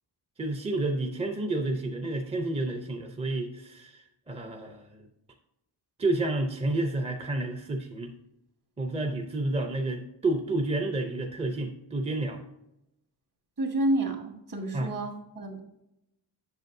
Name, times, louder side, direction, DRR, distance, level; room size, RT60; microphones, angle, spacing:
voice 1, 0.4-5.1 6.0-8.1 8.8-12.4 14.7-14.9, right 2 dB, 15° right, 4 dB, 0.5 m, -30 dB
voice 2, 13.6-15.6, right 1 dB, 45° right, 2 dB, 1.6 m, -29 dB
8.0 x 6.9 x 2.6 m, 0.85 s
wide cardioid pair, 165°, 44 cm